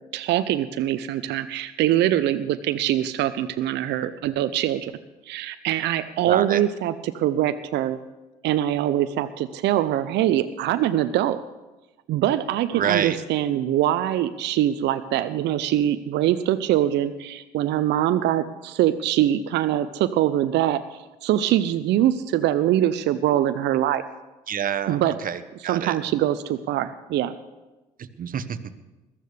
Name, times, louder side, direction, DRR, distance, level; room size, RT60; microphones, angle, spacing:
voice 1, 0.1-4.9 5.3-8.0 8.4-11.4 12.1-24.0 24.9-25.1 25.6-27.3, right 12 dB, 60° right, 11 dB, 0.7 m, -23 dB
voice 2, 6.3-6.6 12.7-13.2 24.5-26.0 28.2-28.6, right 8 dB, 45° right, 11 dB, 1.1 m, -27 dB
21.0 x 13.5 x 3.4 m, 1.1 s
hypercardioid pair, 55°, 20 cm